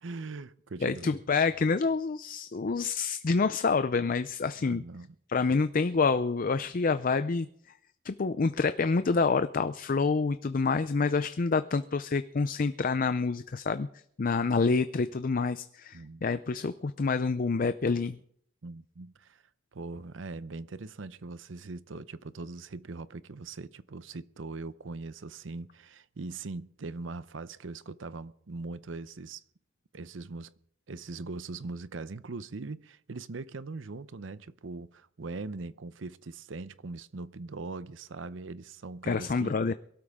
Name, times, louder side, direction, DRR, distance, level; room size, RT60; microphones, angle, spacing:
voice 1, 0.0-1.1 4.6-5.1 15.9-16.3 18.6-19.4 19.7-29.4 29.9-30.5 30.9-39.6, right 3 dB, 90° right, 0.7 m, -41 dB
voice 2, 0.8-4.8 5.3-7.5 8.0-13.9 14.2-18.2 39.0-39.7, left 4 dB, 45° left, 0.5 m, -27 dB
23.0 x 12.5 x 3.6 m
head